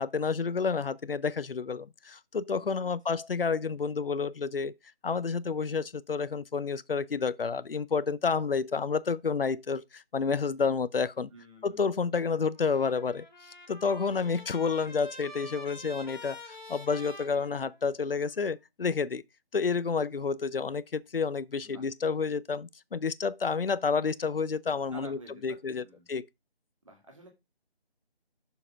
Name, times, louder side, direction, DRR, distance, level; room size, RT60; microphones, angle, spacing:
voice 1, 0.0-4.7 5.0-11.3 11.6-13.3 13.7-19.2 19.5-25.2 25.4-26.3, left 5 dB, 60° left, 0.5 m, -30 dB
voice 2, 2.6-2.9 11.3-11.9 21.6-21.9 24.9-26.1 26.8-27.3, right 2 dB, 30° right, 2.1 m, -51 dB
Trumpet, 12.5-18.2, left 2 dB, 45° left, 2.0 m, -47 dB
6.6 x 5.0 x 5.0 m
figure-of-eight pair, 180°, 32 cm